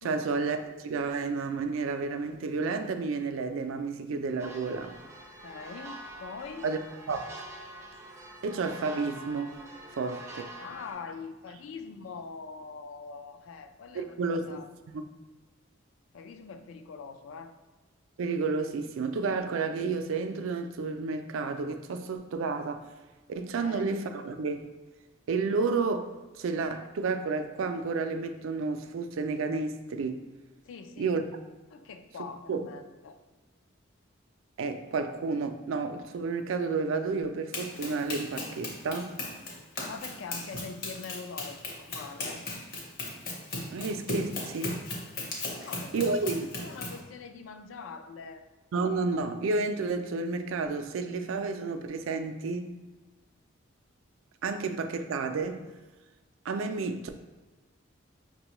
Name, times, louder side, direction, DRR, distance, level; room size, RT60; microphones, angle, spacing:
voice 1, 0.0-5.0 6.6-6.8 7.1-7.3 8.4-9.5 9.9-10.4 13.9-14.6 14.9-15.0 18.2-22.9 23.3-24.7 25.3-30.2 31.0-31.2 32.5-32.7 34.6-39.1 43.7-44.8 45.9-46.5 48.7-52.8 54.4-55.7 56.5-57.1, right 4 dB, 80° right, 0.4 m, -31 dB
sound 1, 4.4-10.9, right 1 dB, 15° right, 0.4 m, -45 dB
voice 2, 5.4-6.7 10.6-14.7 16.1-17.5 23.6-23.8 30.6-31.2 31.7-33.2 39.9-42.5 45.5-48.4, left 5 dB, 80° left, 0.4 m, -43 dB
Run, 37.5-47.0, left 2 dB, 45° left, 0.8 m, -37 dB
5.3 x 2.2 x 2.9 m
head